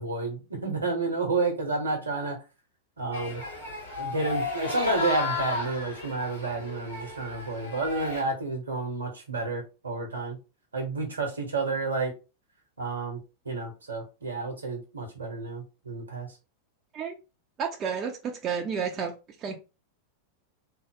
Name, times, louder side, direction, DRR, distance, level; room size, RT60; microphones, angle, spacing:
voice 1, 0.0-2.4 3.0-3.4 4.0-10.4 10.7-12.1 12.8-13.2 13.4-16.3, right 3 dB, 75° right, 3 dB, 1.1 m, -30 dB
sound 1, 3.1-8.2, left 3 dB, 70° left, 1.5 m, -33 dB
voice 2, 17.6-19.1 19.4-19.6, right 6 dB, 30° right, 2 dB, 0.6 m, -31 dB
3.3 x 2.0 x 3.7 m, 0.30 s
figure-of-eight pair, 90°, 0 cm